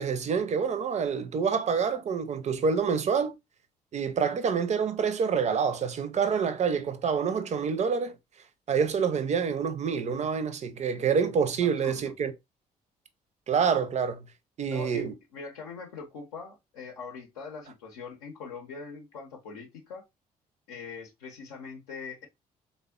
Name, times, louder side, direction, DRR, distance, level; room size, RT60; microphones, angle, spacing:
voice 1, 0.0-3.3 3.9-8.2 8.7-12.3 13.5-14.3 14.6-15.1, right 6 dB, 35° right, 0.5 m, -27 dB
voice 2, 11.6-12.1 14.7-20.0 20.7-22.3, left 5 dB, 75° left, 0.6 m, -42 dB
3.4 x 2.1 x 2.2 m
figure-of-eight pair, 45°, 19 cm